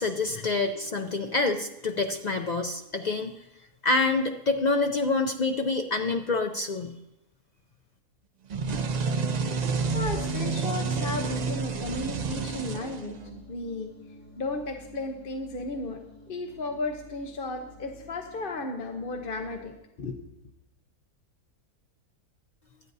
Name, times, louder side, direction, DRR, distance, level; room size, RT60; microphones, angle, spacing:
voice 1, 0.0-3.3 3.8-6.9, left 3 dB, 75° left, 4 dB, 0.4 m, -27 dB
sound 1, 8.5-13.4, right 4 dB, 60° right, 0.4 m, -29 dB
sound 2, 8.7-19.8, left 2 dB, 25° left, 5.7 m, -50 dB
voice 2, 9.9-13.1 13.5-13.9 14.4-16.0 16.3-19.7 20.0-20.2, left 2 dB, 45° left, 3 dB, 0.9 m, -34 dB
24.0 x 9.2 x 2.7 m, 0.89 s
omnidirectional pair, 1.6 m